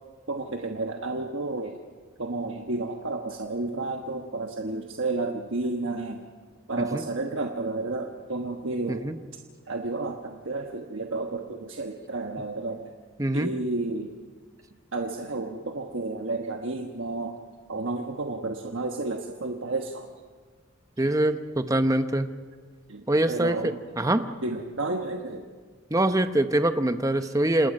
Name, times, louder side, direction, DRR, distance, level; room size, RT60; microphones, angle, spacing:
voice 1, 0.3-1.8 2.2-6.2 6.7-9.1 9.7-12.9 13.3-14.1 14.9-17.4 17.7-20.1 21.0-21.1 22.9-23.8 24.4-25.5, right 2 dB, 70° right, 3 dB, 1.3 m, -31 dB
voice 2, 13.2-13.5 21.0-22.3 23.1-24.2 25.9-27.7, right 1 dB, 15° right, 9 dB, 0.9 m, -24 dB
28.0 x 19.5 x 5.4 m, 1.5 s
head